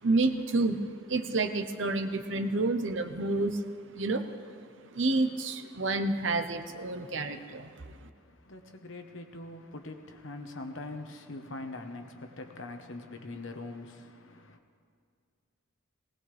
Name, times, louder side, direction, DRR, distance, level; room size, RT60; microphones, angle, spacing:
voice 1, 0.0-3.6 3.9-4.3 4.9-8.1, right 2 dB, 60° right, 0.8 m, -29 dB
voice 2, 8.2-14.6, left 2 dB, 65° left, 1.2 m, -43 dB
19.5 x 18.5 x 3.4 m
head